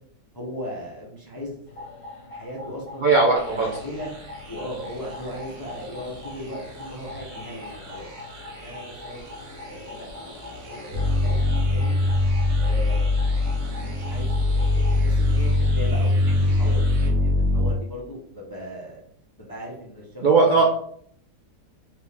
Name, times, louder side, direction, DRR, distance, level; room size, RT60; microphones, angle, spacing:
voice 1, 0.3-1.9 2.3-3.1 3.5-4.1 4.5-9.2 9.7-10.1 10.7-12.0 12.5-13.1 14.0-19.0 19.4-20.6, equal, 20° left, -4 dB, 0.5 m, -37 dB
sound 1, 1.7-15.0, left 2 dB, 80° left, 1.9 m, -42 dB
voice 2, 3.0-3.7 20.2-20.6, right 4 dB, 70° right, -2 dB, 0.4 m, -18 dB
sound 2, 3.4-17.1, right 1 dB, 85° right, 1.8 m, -43 dB
sound 3, 10.9-17.7, left 2 dB, 40° right, 1.1 m, -21 dB
4.5 x 2.8 x 3.4 m, 0.63 s
omnidirectional pair, 1.9 m